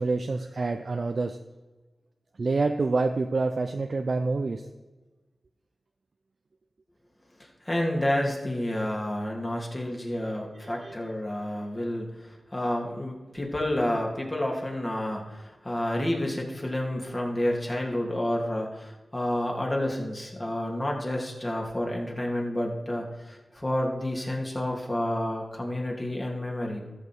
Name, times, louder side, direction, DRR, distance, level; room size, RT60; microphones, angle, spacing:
voice 1, 0.0-1.4 2.4-4.7 10.5-11.0, right 3 dB, 65° right, 6 dB, 0.5 m, -27 dB
voice 2, 7.6-26.8, left 1 dB, 30° left, 0 dB, 2.8 m, -30 dB
13.5 x 6.7 x 4.7 m, 1.2 s
cardioid pair, 45°, 0 cm